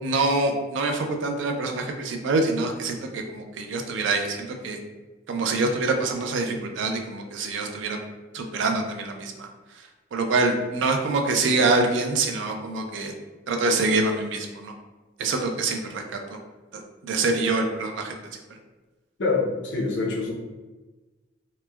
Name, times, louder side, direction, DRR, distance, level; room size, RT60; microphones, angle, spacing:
voice 1, 0.0-4.8 5.3-8.0 8.3-9.5 9.7-13.1 13.5-14.7 15.2-16.4 16.7-18.1, right 3 dB, 75° right, 4 dB, 0.4 m, -25 dB
voice 2, 19.2-20.3, left 3 dB, 75° left, -2 dB, 0.6 m, -25 dB
3.1 x 2.1 x 2.2 m, 1.2 s
head